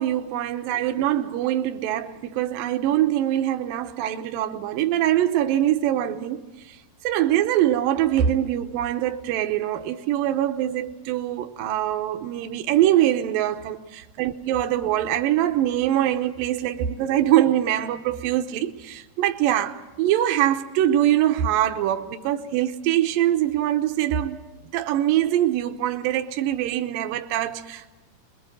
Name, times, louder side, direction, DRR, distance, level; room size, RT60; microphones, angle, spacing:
voice 1, 0.0-6.8 7.0-24.4 24.7-27.9, right 12 dB, 75° right, 2.4 m, -23 dB
23.0 x 22.0 x 7.6 m
omnidirectional pair, 4.3 m